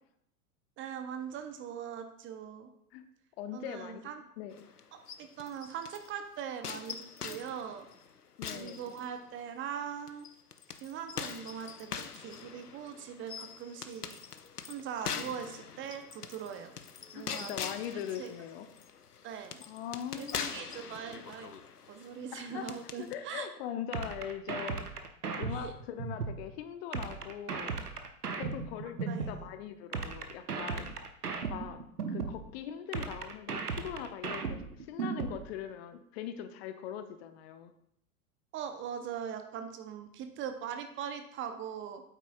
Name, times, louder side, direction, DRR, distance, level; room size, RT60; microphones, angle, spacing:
voice 1, 0.8-2.7 3.5-4.2 5.2-7.9 8.5-10.3 10.8-14.2 14.7-16.7 17.1-17.5 18.2-18.3 19.2-19.6 20.2-21.5 21.9-23.5 25.5-25.7 29.1-29.5 38.5-42.0, right 8 dB, 25° right, 7 dB, 0.7 m, -41 dB
voice 2, 3.4-4.0 4.4-4.6 8.4-8.9 17.1-18.7 19.7-20.7 22.3-22.7 23.0-24.8 25.4-27.7 28.3-30.9 31.5-31.8 32.1-37.7, left 9 dB, 45° left, 9 dB, 0.7 m, -41 dB
sound 1, 4.5-6.1 6.6-9.5 10.1-23.2, left 7 dB, 90° left, 0.6 m, -43 dB
sound 2, 23.9-26.4 26.9-29.4 29.9-32.4 32.9-35.4, right 5 dB, 85° right, 0.9 m, -36 dB
8.9 x 8.3 x 2.4 m, 0.73 s
figure-of-eight pair, 85°, 45 cm